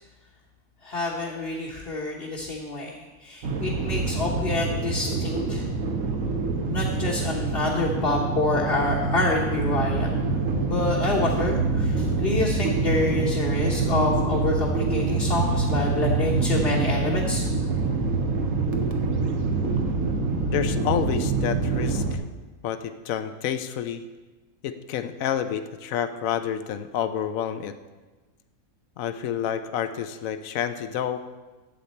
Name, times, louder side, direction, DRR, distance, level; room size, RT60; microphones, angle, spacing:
voice 1, 0.8-5.7 6.7-10.4 10.7-17.4, left 2 dB, 45° left, -4 dB, 1.4 m, -27 dB
sound 1, 3.4-22.1, right 3 dB, 70° right, 1.4 m, -25 dB
voice 2, 20.5-22.2 22.6-24.0 24.6-27.7 29.0-31.3, left 9 dB, 75° left, 10 dB, 1.1 m, -29 dB
12.0 x 8.0 x 4.3 m, 1.2 s
omnidirectional pair, 1.5 m